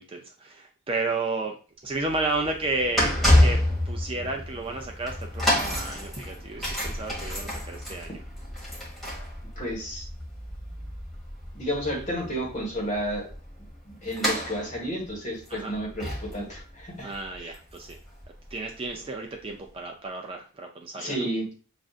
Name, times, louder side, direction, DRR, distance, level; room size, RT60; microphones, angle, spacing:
voice 1, 0.0-1.5 1.8-3.1 3.4-3.6 3.9-8.2 15.5-15.7 17.0-18.0 18.5-21.3, right 3 dB, 25° right, 2 dB, 0.4 m, -32 dB
sound 1, 1.9-18.9 19.5-19.6, left 1 dB, ahead, 1.3 m, -29 dB
voice 2, 9.6-10.1 11.5-13.3 13.8-17.1 17.4-17.5 21.0-21.5, equal, 35° left, -2 dB, 1.4 m, -31 dB
6.2 x 2.5 x 2.4 m, 0.38 s
head